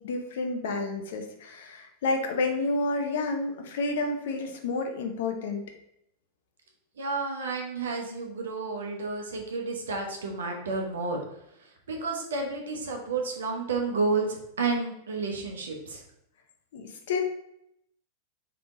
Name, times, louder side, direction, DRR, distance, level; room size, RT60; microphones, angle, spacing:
voice 1, 0.0-5.6 16.7-17.2, left 3 dB, 55° left, 4 dB, 0.7 m, -30 dB
voice 2, 7.0-11.2 11.9-16.0, right 3 dB, 65° right, 1 dB, 0.9 m, -31 dB
3.5 x 3.3 x 3.8 m, 0.77 s
figure-of-eight pair, 90°, 0 cm